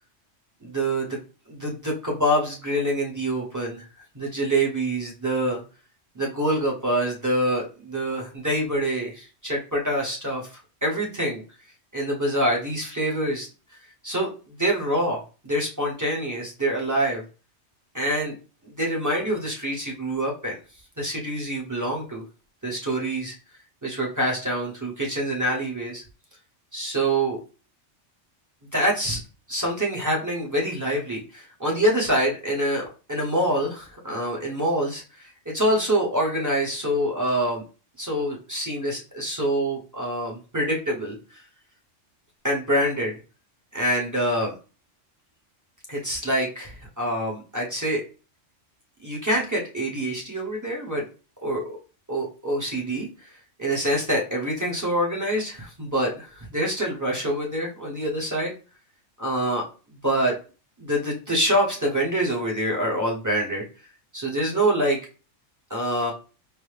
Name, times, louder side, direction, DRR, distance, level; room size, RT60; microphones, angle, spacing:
voice 1, 0.6-1.2 1.5-3.8 4.1-5.6 6.1-11.4 11.9-13.5 14.0-14.3 14.6-17.2 17.9-18.3 18.6-20.5 21.0-22.2 22.6-23.3 23.8-26.0 26.7-27.4 28.7-29.2 29.5-37.6 38.0-41.4 42.4-43.1 43.7-44.5 45.9-48.0 49.0-51.0 51.4-51.6 52.1-53.1 53.6-58.5 59.2-59.6 60.0-60.3 60.8-63.6 64.1-65.0 65.7-66.1, right 1 dB, 20° right, -2 dB, 0.7 m, -26 dB
4.7 x 2.1 x 3.2 m, 0.34 s
omnidirectional pair, 1.3 m